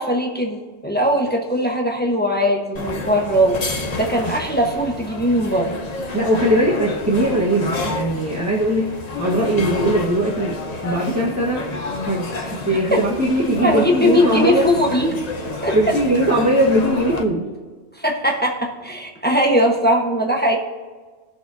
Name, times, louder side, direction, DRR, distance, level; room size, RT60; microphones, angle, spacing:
voice 1, 0.0-3.6 3.9-5.8 12.7-13.0 13.6-15.2 15.6-15.8 18.0-20.6, equal, 10° left, 0 dB, 1.1 m, -20 dB
sound 1, 2.8-17.2, left 3 dB, 40° left, 1.0 m, -29 dB
voice 2, 6.1-8.9 9.2-11.6 12.0-14.7 15.7-17.5, right 1 dB, 15° right, -4 dB, 1.3 m, -20 dB
19.0 x 6.5 x 2.7 m, 1.4 s
omnidirectional pair, 1.1 m